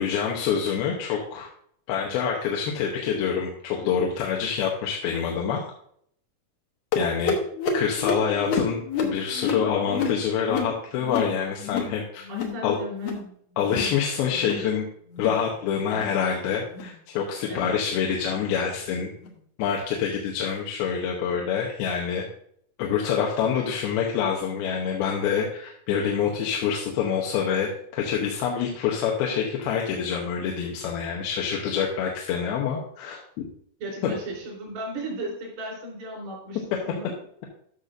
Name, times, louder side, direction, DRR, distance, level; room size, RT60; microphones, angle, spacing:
voice 1, 0.0-1.5 1.9-5.6 6.9-7.4 7.7-12.3 12.6-12.8 13.6-14.9 15.2-19.1 19.6-22.3 22.8-33.4 34.0-34.1, left 7 dB, 85° left, -1 dB, 2.8 m, -26 dB
sound 1, 6.9-12.0 12.2-12.6 12.9-13.3 13.6-14.0 14.3-14.7 15.1-15.4 15.9-16.2 16.7-16.9 17.5-17.7 18.3-18.5 19.2-19.3 20.1-20.2, left 5 dB, 65° left, 1.7 m, -29 dB
voice 2, 12.3-13.2 17.5-17.7 33.8-37.1, right 1 dB, 85° right, -3 dB, 5.5 m, -35 dB
12.5 x 6.6 x 2.6 m, 0.65 s
omnidirectional pair, 4.3 m